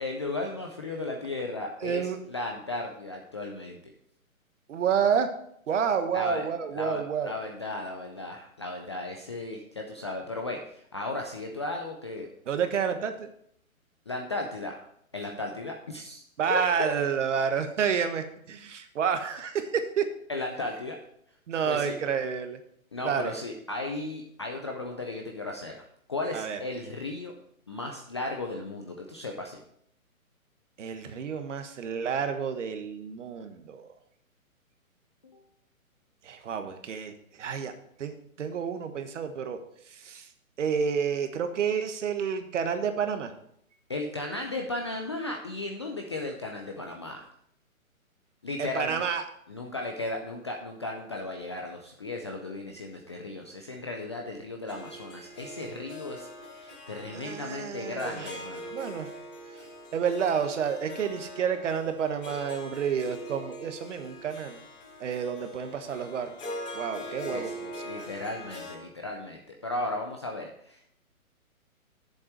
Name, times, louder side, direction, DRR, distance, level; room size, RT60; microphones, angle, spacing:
voice 1, 0.0-3.9 6.1-6.4 6.7-12.3 14.1-14.8 15.1-16.2 16.5-16.9 20.3-21.0 21.6-21.9 22.9-25.8 26.1-27.3 27.7-29.6 35.2-35.4 43.9-47.3 48.4-49.0 49.5-56.3 56.5-58.7 67.3-67.5 67.8-70.9, left 2 dB, 20° left, 1 dB, 0.4 m, -35 dB
voice 2, 1.8-2.2 4.7-5.3 5.7-7.3 12.5-13.3 16.4-20.1 21.5-22.6 23.0-23.3 26.3-26.6 30.8-33.9 36.2-37.7 38.0-39.6 39.8-40.3 40.6-43.3 48.6-49.2 57.1-58.4 58.7-59.1 59.5-64.6 65.0-66.3 66.7-67.8, right 7 dB, 60° right, 8 dB, 1.3 m, -30 dB
Harp, 54.7-68.8, equal, 60° left, 4.2 m, -42 dB
7.8 x 7.2 x 4.7 m, 0.69 s
hypercardioid pair, 140°, 42 cm